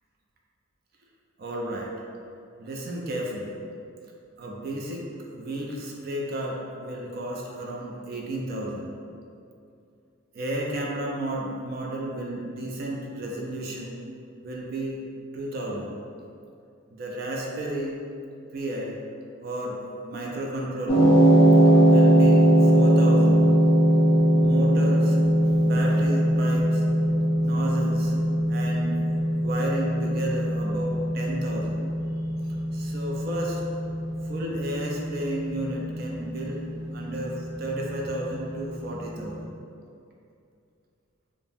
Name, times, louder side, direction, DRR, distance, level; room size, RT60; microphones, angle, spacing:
voice 1, 1.4-1.9 2.6-3.6 4.4-8.9 10.3-13.9 14.4-15.0 15.3-16.0 16.9-18.0 18.5-18.9 19.4-21.1 21.6-23.5 24.3-25.2 25.6-26.8 27.4-28.1 28.5-29.1 29.4-31.9 32.7-33.7 34.2-36.7 36.9-39.6, right 1 dB, 45° right, -2 dB, 0.3 m, -32 dB
sound 1, 20.9-39.1, right 1 dB, 45° left, 0.6 m, -21 dB
2.6 x 2.0 x 3.4 m, 2.5 s
head